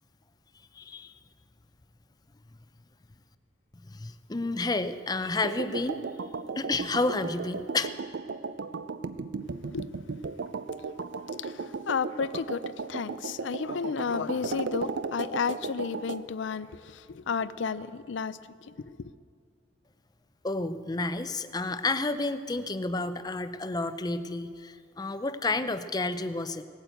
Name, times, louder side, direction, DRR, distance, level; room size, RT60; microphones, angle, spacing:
voice 1, 0.8-1.1 3.9-6.0 6.6-7.9 20.4-26.6, left 3 dB, 20° left, 0.5 m, -30 dB
sound 1, 5.4-16.2, right 4 dB, 70° right, 0.5 m, -36 dB
voice 2, 11.4-12.6 12.9-19.1, left 5 dB, 70° left, 0.5 m, -32 dB
18.0 x 8.9 x 7.9 m
head